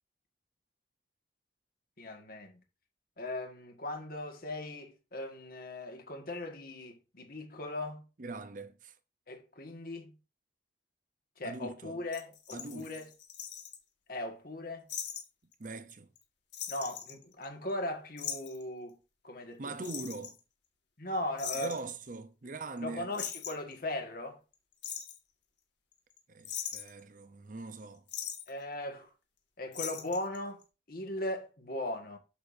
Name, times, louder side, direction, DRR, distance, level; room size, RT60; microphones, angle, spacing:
voice 1, 2.0-2.5 3.2-8.0 9.3-10.1 11.4-13.1 14.1-14.9 16.7-19.0 19.2-19.9 21.0-21.7 22.8-24.4 28.5-29.1 29.6-30.6 30.9-32.2, left 1 dB, 50° left, 1.8 m, -38 dB
voice 2, 8.2-8.9 11.4-12.0 12.5-12.9 15.6-16.1 19.6-20.4 21.6-23.1 26.3-28.0, right 3 dB, 45° right, 0.7 m, -42 dB
sound 1, 12.1-13.8 14.9-15.2 15.5-15.6 15.9-16.2 16.5-17.7 18.2-18.6 19.8-20.4 21.4-21.9 22.8-22.9 23.1-23.7 24.5-25.2 25.9-26.2 26.5-27.0 28.1-28.5 29.7-30.4 30.6-30.7, left 9 dB, 75° left, 1.9 m, -40 dB
8.1 x 6.8 x 2.7 m
head